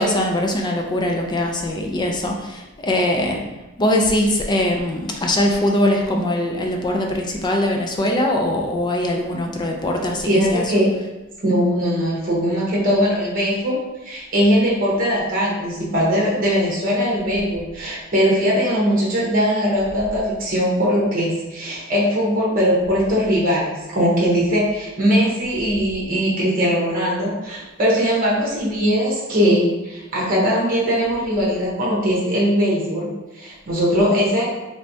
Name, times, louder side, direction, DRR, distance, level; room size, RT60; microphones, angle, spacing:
voice 1, 0.0-3.4 3.8-10.7, left 1 dB, 20° left, 1 dB, 0.4 m, -21 dB
voice 2, 10.3-10.9 11.4-33.1 33.3-34.4, equal, 40° right, -5 dB, 1.0 m, -20 dB
3.3 x 3.1 x 2.7 m, 1.1 s
head